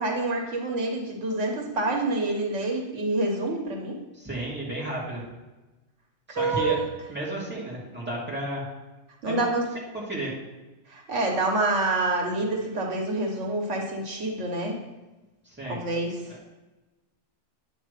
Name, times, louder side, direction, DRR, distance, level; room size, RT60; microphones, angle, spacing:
voice 1, 0.0-4.0 6.3-6.9 9.2-9.6 10.9-14.8 15.6-16.2, right 2 dB, 90° right, 1 dB, 1.5 m, -27 dB
voice 2, 4.1-5.2 6.3-6.8 7.1-8.6 9.3-9.6 10.1-10.3 15.4-15.8 16.3-16.4, right 1 dB, 10° right, -6 dB, 2.2 m, -32 dB
8.9 x 3.2 x 6.5 m, 1.1 s
omnidirectional pair, 1.2 m